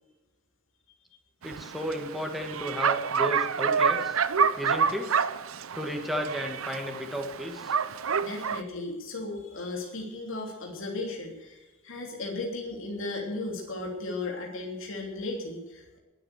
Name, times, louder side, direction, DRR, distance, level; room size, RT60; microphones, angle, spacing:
voice 1, 1.4-4.2 4.6-5.1 5.7-7.7, equal, ahead, 3 dB, 2.3 m, -33 dB
Bark, 1.4-8.6, right 6 dB, 85° right, 0.7 m, -28 dB
voice 2, 7.9-16.0, left 2 dB, 70° left, 0 dB, 3.1 m, -36 dB
21.0 x 9.0 x 6.8 m, 1.2 s
head